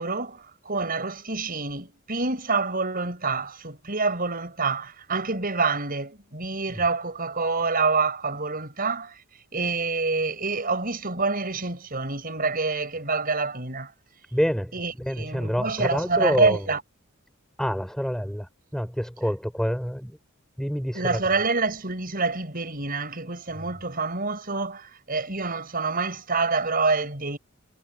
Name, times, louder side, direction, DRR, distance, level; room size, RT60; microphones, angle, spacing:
voice 1, 0.0-9.2 9.5-13.9 14.7-16.8 20.9-27.4, right 4 dB, 40° right, 6.7 m, -27 dB
voice 2, 14.3-16.6 17.6-20.2 20.6-21.2, equal, 5° left, 5.7 m, -27 dB
head